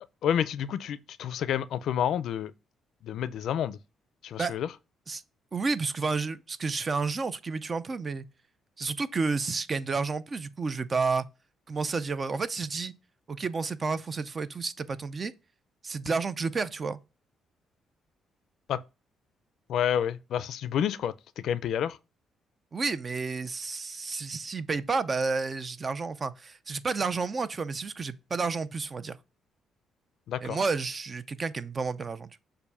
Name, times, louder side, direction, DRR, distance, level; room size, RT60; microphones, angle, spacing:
voice 1, 0.2-2.5 3.0-3.8 4.2-4.7 18.7-18.8 19.7-22.0 30.3-30.6, left 9 dB, 75° left, 0.4 m, -29 dB
voice 2, 5.5-8.3 8.8-11.3 11.7-12.9 13.3-15.3 15.8-17.0 22.7-29.2 30.4-32.4, right 4 dB, 35° right, 0.5 m, -31 dB
6.9 x 2.6 x 5.5 m
cardioid pair, 90°, 0 cm